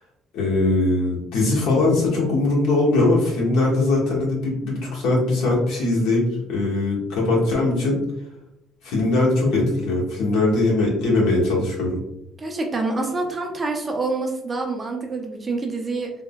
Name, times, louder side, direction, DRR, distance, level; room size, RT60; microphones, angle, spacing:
voice 1, 0.3-6.2 6.5-8.0 8.8-12.0, left 2 dB, 80° left, -3 dB, 1.1 m, -21 dB
voice 2, 12.4-16.1, right 3 dB, 30° right, 2 dB, 0.6 m, -26 dB
3.5 x 2.1 x 2.3 m, 0.86 s
cardioid pair, 90°, 0 cm